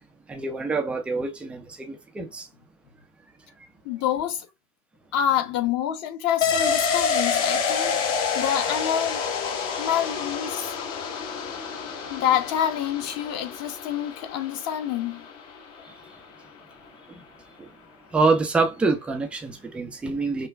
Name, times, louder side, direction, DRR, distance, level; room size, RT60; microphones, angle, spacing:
voice 1, 0.3-2.5 9.7-9.8 17.1-17.2 17.6-17.7 18.1-20.5, right 3 dB, 5° right, 0.3 m, -26 dB
voice 2, 3.8-4.5 5.1-9.2 9.8-10.8 12.1-15.3, left 10 dB, 35° left, 0.9 m, -27 dB
sound 1, 6.4-15.8 16.1-16.2, left 6 dB, 60° left, 1.4 m, -28 dB
5.7 x 2.2 x 2.3 m
figure-of-eight pair, 90°, 42 cm